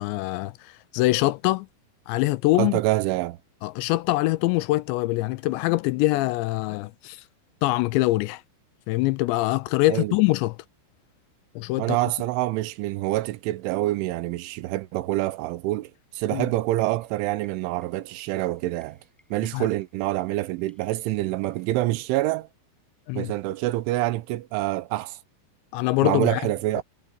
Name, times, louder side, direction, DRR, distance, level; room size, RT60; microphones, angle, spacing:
voice 1, 0.0-1.7 2.1-2.8 3.6-7.2 7.6-8.4 8.9-10.6 11.6-12.0 16.3-16.5 19.5-19.7 23.1-23.3 25.7-26.4 26.8-26.9, left 19 dB, 80° left, 2.7 m, -24 dB
voice 2, 2.6-3.4 9.9-10.2 11.8-19.0 19.3-22.5 23.2-25.2 26.0-26.8, right 17 dB, 90° right, 3.4 m, -26 dB
sound 1, 16.7-21.9, equal, ahead, 7.2 m, -61 dB
omnidirectional pair, 5.4 m